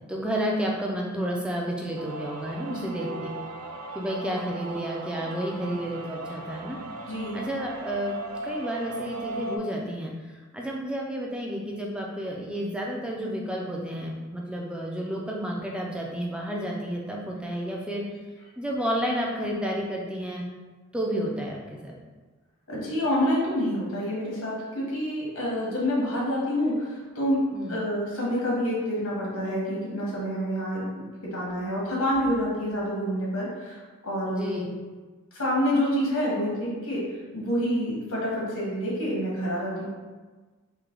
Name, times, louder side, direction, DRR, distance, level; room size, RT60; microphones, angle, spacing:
voice 1, 0.1-3.3 3.9-6.8 7.3-18.0 18.6-20.4 20.9-21.9 27.5-27.8 34.3-34.7, equal, 5° right, -2 dB, 0.4 m, -31 dB
sound 1, 2.0-9.6, right 2 dB, 80° right, 0.4 m, -38 dB
voice 2, 7.0-7.5 22.7-27.4 27.7-34.7 35.3-37.0 37.3-39.9, equal, 80° left, -5 dB, 1.3 m, -28 dB
3.3 x 2.8 x 3.7 m, 1.3 s
head